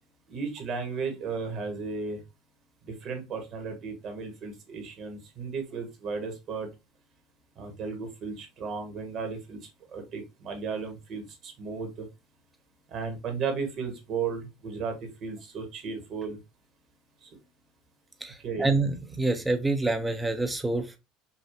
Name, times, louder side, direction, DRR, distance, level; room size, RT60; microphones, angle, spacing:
voice 1, 0.3-2.2 2.8-6.7 7.6-9.6 9.9-12.1 12.9-16.4 17.2-17.3 18.4-18.7, right 5 dB, 50° right, 1.8 m, -35 dB
voice 2, 18.2-21.0, right 2 dB, 10° right, 0.9 m, -27 dB
5.8 x 2.4 x 2.9 m
hypercardioid pair, 80°, 0 cm